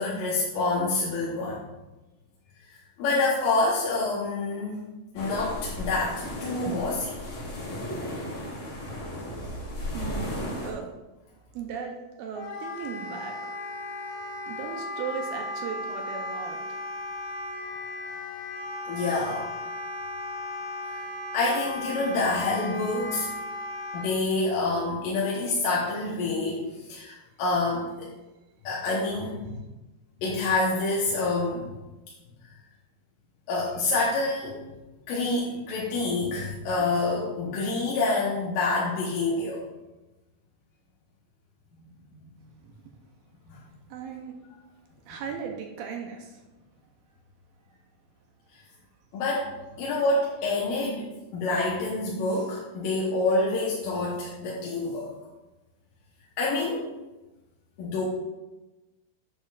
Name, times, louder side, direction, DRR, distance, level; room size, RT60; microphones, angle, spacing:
voice 1, 0.0-1.6 3.0-4.8 5.1-7.2 18.9-19.5 21.3-23.3 23.9-26.6 26.9-28.1 28.6-29.6 30.2-31.7 33.5-34.6 35.1-39.6 42.1-42.3 43.5-43.6 49.1-49.5 49.8-51.1 51.3-55.1 56.4-56.9 57.8-58.0, left 3 dB, 70° left, -5 dB, 2.6 m, -27 dB
sound 1, 5.2-10.7, left 1 dB, 45° left, 3.3 m, -35 dB
voice 2, 9.9-10.9 11.5-13.4 14.5-16.6 42.6-42.7 43.9-44.4 45.1-46.4, right 7 dB, 80° right, 2 dB, 2.4 m, -37 dB
Wind instrument woodwind instrument, 12.4-24.1, left 2 dB, 90° left, 3.2 m, -36 dB
9.1 x 7.8 x 2.5 m, 1.1 s
omnidirectional pair, 4.4 m